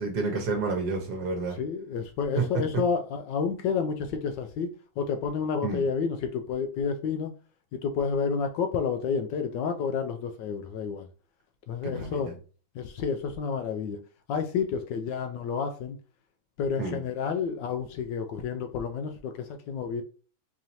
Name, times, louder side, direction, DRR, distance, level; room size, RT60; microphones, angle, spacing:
voice 1, 0.0-1.6 2.4-2.8 5.6-5.8 11.8-12.3 16.8-17.0, right 4 dB, 60° right, 1.4 m, -30 dB
voice 2, 1.6-4.7 5.0-7.3 7.7-11.1 11.7-12.3 12.7-14.0 14.3-16.0 16.6-20.0, left 6 dB, 75° left, 1.1 m, -30 dB
4.8 x 2.9 x 2.7 m
omnidirectional pair, 2.2 m